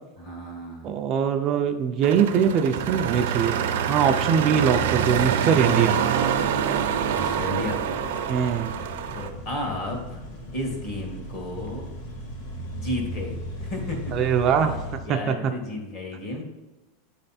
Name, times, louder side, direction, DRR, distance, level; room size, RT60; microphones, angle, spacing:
voice 1, 0.2-0.9 7.1-7.8 9.1-10.2 10.5-11.8 12.7-14.1 14.5-16.4, left 1 dB, 45° left, 1 dB, 1.6 m, -33 dB
voice 2, 0.8-3.6 3.9-6.0 8.3-8.7 14.1-15.5, right 7 dB, 30° right, 5 dB, 0.4 m, -22 dB
sound 1, 2.0-9.3, right 8 dB, 75° right, 0.6 m, -25 dB
sound 2, 6.1-15.0, equal, 65° left, 1.6 m, -37 dB
8.7 x 3.3 x 4.2 m, 1.1 s
supercardioid pair, 170°, 0 cm